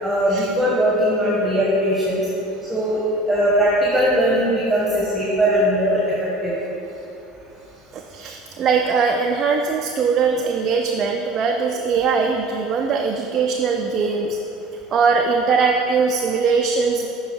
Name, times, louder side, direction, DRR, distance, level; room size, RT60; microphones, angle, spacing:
voice 1, 0.0-2.2 2.7-3.0 3.2-6.2 6.4-6.5, equal, 10° right, -6 dB, 1.4 m, -19 dB
voice 2, 7.9-14.4 14.9-17.1, right 5 dB, 40° right, 2 dB, 0.4 m, -21 dB
6.9 x 4.7 x 4.6 m, 2.9 s
hypercardioid pair, 75°, 0 cm